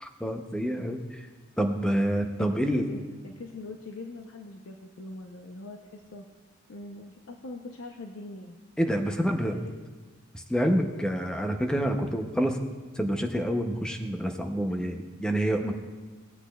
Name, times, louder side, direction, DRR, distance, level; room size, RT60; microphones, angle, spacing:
voice 1, 0.0-1.2 1.6-2.9 8.8-9.6 10.3-12.6 13.0-15.8, equal, 5° left, 4 dB, 0.6 m, -27 dB
voice 2, 2.4-6.2 6.7-8.6 9.2-9.7, left 2 dB, 85° left, 3 dB, 0.6 m, -42 dB
17.0 x 8.1 x 2.3 m, 1.4 s
head